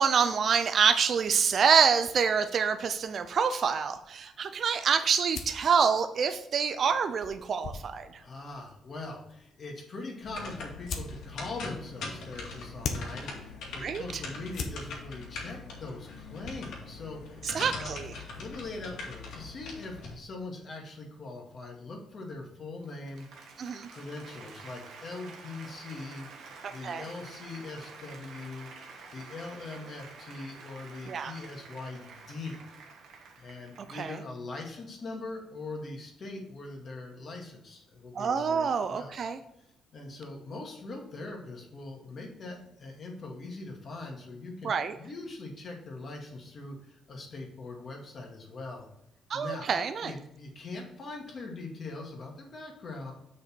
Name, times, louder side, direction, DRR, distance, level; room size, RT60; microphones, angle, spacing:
voice 1, 0.0-8.2 13.8-14.0 17.4-18.1 23.6-23.9 26.6-27.0 31.1-31.3 33.9-34.2 38.1-39.4 44.6-45.0 49.3-50.1, right 6 dB, 55° right, 9 dB, 0.5 m, -26 dB
sound 1, 2.0-18.9, left 5 dB, 65° left, 1.1 m, -45 dB
voice 2, 8.2-18.0 18.3-23.3 23.9-28.9 29.1-32.6 33.4-39.2 39.6-48.9 49.3-49.7 50.0-53.1, left 3 dB, 50° left, 1 dB, 2.1 m, -42 dB
sound 2, 10.2-20.1, left 3 dB, 80° left, 2.2 m, -42 dB
Applause, 22.7-34.2, right 4 dB, 75° right, 1.5 m, -49 dB
6.6 x 5.3 x 4.5 m, 0.82 s
cardioid pair, 90°, 0 cm